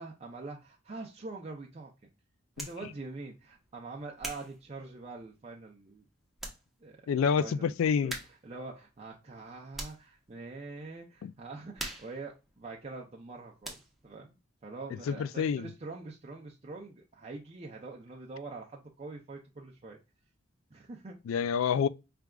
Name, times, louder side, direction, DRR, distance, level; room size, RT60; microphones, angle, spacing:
voice 1, 0.0-1.9 2.6-6.0 6.8-7.0 7.4-7.7 8.0-8.1 8.4-20.0 20.7-21.2, right 3 dB, 30° right, 0.6 m, -44 dB
sound 1, 2.5-2.9 3.5-5.5 6.0-6.1 6.4-6.7 7.0-7.1 8.1-8.6 8.9-10.1 10.6-10.9 11.2-13.3 13.6-14.1, right 1 dB, ahead, 0.9 m, -43 dB
voice 2, 7.1-8.2 11.2-11.3 15.1-15.7 21.3-21.9, left 6 dB, 85° left, 0.3 m, -28 dB
4.8 x 3.3 x 2.3 m
head